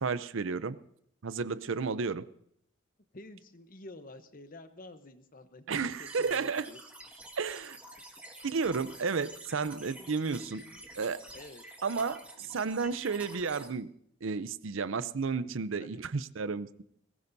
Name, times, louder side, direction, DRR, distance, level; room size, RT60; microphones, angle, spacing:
voice 1, 0.0-0.8 1.2-2.3 5.7-6.7 7.4-7.8 8.4-10.6 11.0-11.2 11.8-13.9 14.2-16.7, right 5 dB, 70° right, 15 dB, 0.6 m, -32 dB
voice 2, 3.1-6.8 10.0-10.8 11.3-11.6 15.8-15.9, left 2 dB, 40° left, 10 dB, 0.9 m, -50 dB
sound 1, 5.9-13.7, right 1 dB, 5° right, 1.7 m, -49 dB
20.5 x 17.5 x 2.7 m, 0.69 s
head